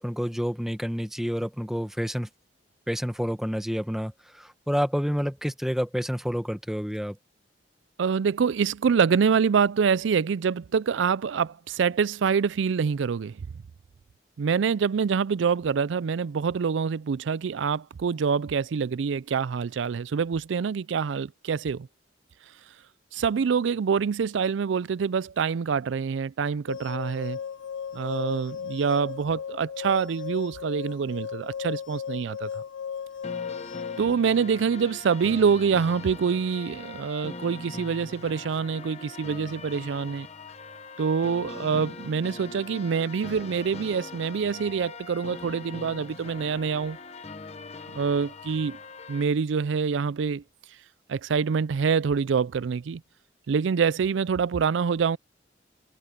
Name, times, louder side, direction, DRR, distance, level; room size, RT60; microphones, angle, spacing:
voice 1, 0.0-2.3 2.9-7.2, equal, ahead, 1.1 m, -29 dB
voice 2, 8.0-13.4 14.4-21.9 23.1-27.4 27.9-32.6 34.0-40.3 41.0-47.0 47.9-48.8 49.1-50.4 51.1-53.0 53.5-55.2, right 6 dB, 80° right, 0.4 m, -26 dB
sound 1, 26.7-34.1, left 7 dB, 85° left, 0.6 m, -36 dB
sound 2, 33.2-49.2, left 3 dB, 35° left, 1.0 m, -41 dB
head